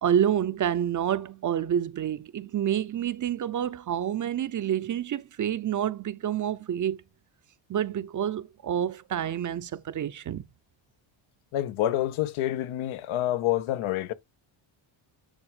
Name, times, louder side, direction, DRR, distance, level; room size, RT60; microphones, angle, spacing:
voice 1, 0.0-7.0 7.7-10.4, right 9 dB, 40° right, 0.6 m, -28 dB
voice 2, 11.5-14.1, left 13 dB, 80° left, 0.9 m, -27 dB
10.0 x 3.6 x 4.8 m
cardioid pair, 125°, 48 cm